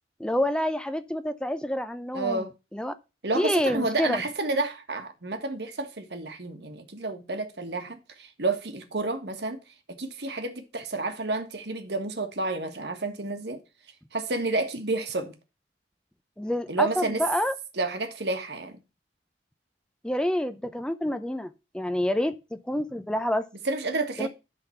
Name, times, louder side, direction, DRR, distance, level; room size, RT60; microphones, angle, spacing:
voice 1, 0.2-2.9 3.4-4.2 16.4-17.5 20.0-22.3 22.7-23.5 24.2-24.3, left 1 dB, 5° left, 0.5 m, -28 dB
voice 2, 2.1-2.5 3.2-9.6 9.9-13.6 14.1-15.3 16.7-17.2 17.7-18.8 23.6-24.3, right 3 dB, 65° right, 1.5 m, -30 dB
11.0 x 3.9 x 5.6 m
head